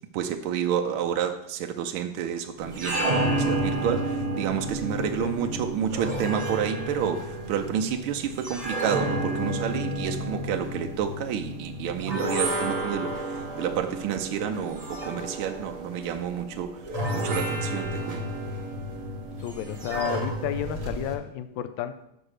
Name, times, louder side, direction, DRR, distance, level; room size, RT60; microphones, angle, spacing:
voice 1, 0.1-16.8 17.1-18.4, right 8 dB, 80° right, 4 dB, 1.5 m, -30 dB
sound 1, 2.6-21.1, right 1 dB, 35° right, 0.6 m, -31 dB
voice 2, 5.0-5.7 19.3-22.1, left 10 dB, 70° left, 10 dB, 1.2 m, -33 dB
6.0 x 5.4 x 6.4 m, 0.81 s
omnidirectional pair, 2.4 m